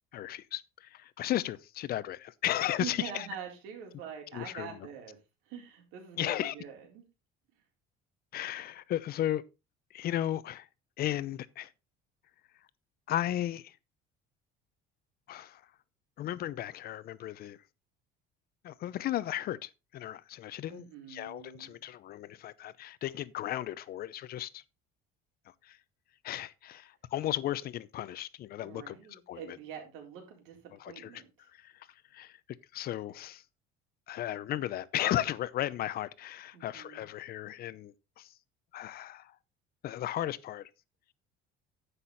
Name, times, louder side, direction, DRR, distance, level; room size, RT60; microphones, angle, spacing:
voice 1, 0.1-3.3 4.3-4.8 6.2-6.5 8.3-9.4 9.9-10.7 11.0-11.7 13.1-13.8 15.3-15.6 16.2-17.6 18.6-24.6 25.6-25.8 26.2-29.4 30.8-31.2 31.5-32.4 32.7-33.4 34.1-38.3 38.7-39.4 39.8-40.7, left 13 dB, 45° left, 0.7 m, -35 dB
voice 2, 2.8-5.2 5.4-7.0 20.7-21.8 28.6-31.3 36.5-37.1, right 8 dB, 85° right, 4.1 m, -45 dB
10.0 x 8.2 x 4.0 m
cardioid pair, 145°, 21 cm